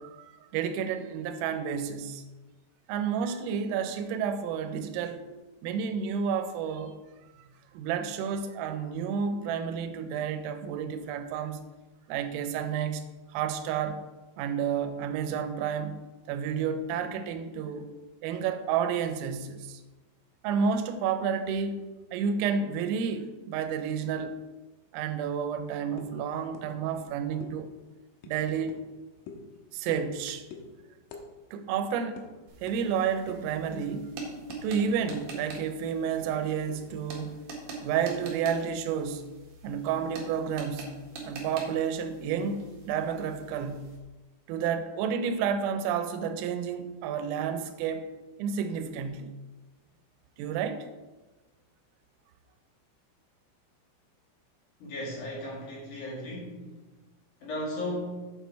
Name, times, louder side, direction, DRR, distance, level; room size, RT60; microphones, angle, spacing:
voice 1, 0.0-2.2 2.9-5.2 5.6-7.0 7.3-11.6 12.1-13.0 13.3-14.0 14.4-16.0 16.3-17.9 18.2-19.8 20.4-24.4 24.9-27.7 28.2-28.8 29.7-30.4 31.5-32.2 32.6-34.1 34.6-37.4 37.8-39.2 39.6-40.9 41.2-43.9 44.5-48.1 48.4-49.3 50.4-50.9, right 7 dB, 85° right, 9 dB, 3.3 m, -30 dB
sound 1, 26.0-26.2 26.6-26.7 26.9-27.1 27.4-27.5 28.2-28.8 29.3-29.5 29.9-30.2 30.5-30.7 31.1-31.3 31.5-31.7 32.2-32.3 32.7-32.8 33.3-33.6 34.0-35.4 35.7-35.8 36.2-37.2, left 5 dB, 80° left, 3.4 m, -46 dB
sound 2, 32.5-44.0, right 3 dB, 55° right, 2.4 m, -44 dB
voice 2, 54.8-56.7 57.4-58.3, left 1 dB, 45° left, -4 dB, 3.3 m, -35 dB
8.5 x 7.3 x 4.5 m, 1.2 s
omnidirectional pair, 5.9 m